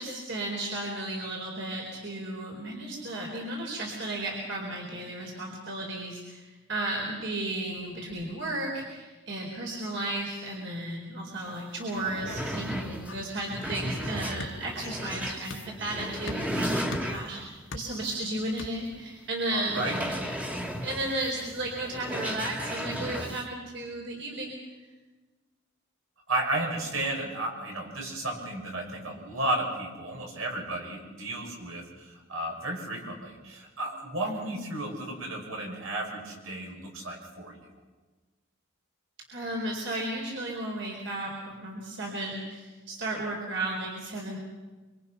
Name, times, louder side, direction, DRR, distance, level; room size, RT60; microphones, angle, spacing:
voice 1, 0.0-17.4 17.7-20.2 20.8-24.5 34.2-34.6 39.3-44.4, right 1 dB, 60° right, -1 dB, 4.3 m, -34 dB
sound 1, 11.5-11.6 11.8-17.5 18.0-18.2 18.6-18.7 19.6-23.5, equal, 5° right, 1.7 m, -35 dB
sound 2, 12.4-19.0, left 2 dB, 65° left, 1.7 m, -45 dB
voice 2, 19.5-20.0 26.3-37.6, right 1 dB, 80° right, 0 dB, 6.6 m, -33 dB
26.5 x 25.0 x 5.9 m, 1.3 s
head